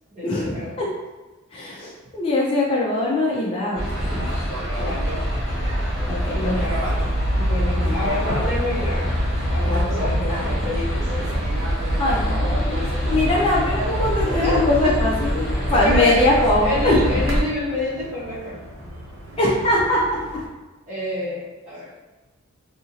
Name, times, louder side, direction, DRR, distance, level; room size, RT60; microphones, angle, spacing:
voice 1, 0.1-0.9 4.8-5.1 6.3-6.9 7.4-9.1 9.5-11.4 14.4-15.1 15.4-16.3 16.6-18.6 20.9-21.9, left 1 dB, 35° right, -12 dB, 0.8 m, -28 dB
voice 2, 1.5-4.2 6.1-6.5 7.8-8.0 10.3-10.4 12.0-12.8 13.1-15.4 15.7-17.0 19.4-20.0, left 2 dB, 25° left, -5 dB, 0.4 m, -21 dB
sound 1, 3.7-17.4, equal, 45° left, 1.0 m, -24 dB
sound 2, 3.9-20.5, right 1 dB, 70° right, 0.6 m, -34 dB
2.8 x 2.5 x 2.8 m, 1.2 s
head